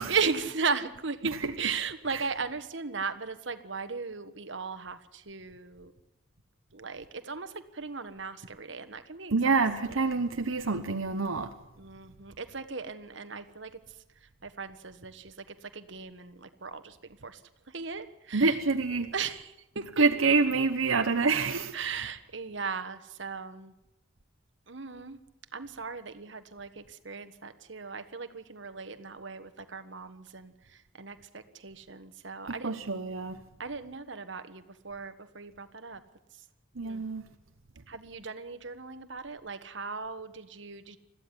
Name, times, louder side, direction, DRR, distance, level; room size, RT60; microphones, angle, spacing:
voice 1, 0.1-5.9 6.7-9.6 9.9-10.2 11.8-13.7 14.4-15.3 15.6-17.0 17.2-17.4 17.7-18.6 19.1-20.0 21.7-23.7 24.7-25.2 25.5-32.8 33.6-36.0 36.8-37.0 37.9-41.0, right 5 dB, 60° right, 1.5 m, -37 dB
voice 2, 9.3-11.5 18.3-19.1 20.0-21.8 32.6-33.4 36.8-37.2, right 4 dB, 80° right, 1.0 m, -26 dB
21.5 x 14.5 x 9.8 m
head